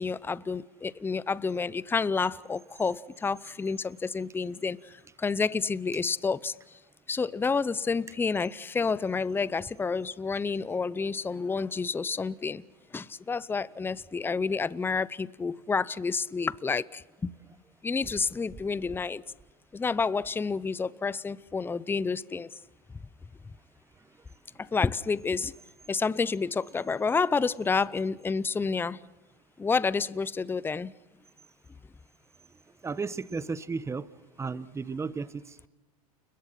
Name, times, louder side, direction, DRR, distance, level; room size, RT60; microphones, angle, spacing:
voice 1, 0.0-6.5 7.1-12.6 12.9-17.3 17.8-19.2 19.7-22.5 24.6-25.5 25.9-29.0 29.6-30.9, left 4 dB, 10° left, 20 dB, 0.7 m, -29 dB
voice 2, 32.8-34.1 34.4-35.7, right 4 dB, 15° right, 16 dB, 1.2 m, -35 dB
30.0 x 21.5 x 5.9 m, 1.0 s
hypercardioid pair, 110°, 20 cm